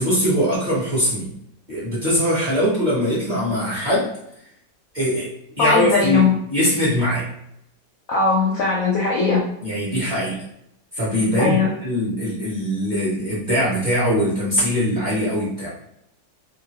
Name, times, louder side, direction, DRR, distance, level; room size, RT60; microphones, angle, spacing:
voice 1, 0.0-1.3 1.7-4.1 4.9-5.3 5.6-7.3 9.6-10.4 10.9-15.7, equal, 35° right, -9 dB, 0.8 m, -21 dB
voice 2, 5.6-6.3 8.1-9.5 11.4-11.7, left 4 dB, 70° left, -4 dB, 0.8 m, -19 dB
2.9 x 2.5 x 2.9 m, 0.77 s
omnidirectional pair, 2.0 m